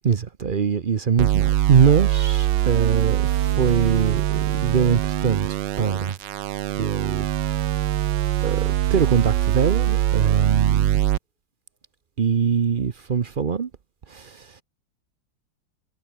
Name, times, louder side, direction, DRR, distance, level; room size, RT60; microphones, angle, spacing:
voice 1, 0.0-5.5 5.8-6.2 6.8-7.3 8.4-8.6 8.9-11.0 12.2-13.7 14.1-14.5, right 6 dB, 50° right, 0.6 m, -22 dB
sound 1, 1.2-11.2, right 13 dB, 75° right, 1.4 m, -22 dB
omnidirectional pair, 2.0 m